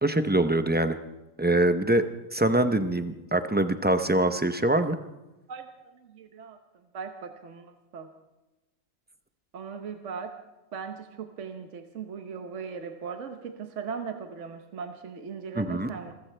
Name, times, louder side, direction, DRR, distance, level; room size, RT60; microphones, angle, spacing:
voice 1, 0.0-1.0 1.4-2.0 2.3-5.0 15.5-15.9, right 1 dB, 10° right, 9 dB, 0.4 m, -24 dB
voice 2, 6.1-6.6 6.9-8.1 9.5-10.3 10.7-16.1, right 6 dB, 65° right, 6 dB, 1.3 m, -38 dB
26.5 x 14.5 x 3.4 m, 1.0 s
omnidirectional pair, 1.4 m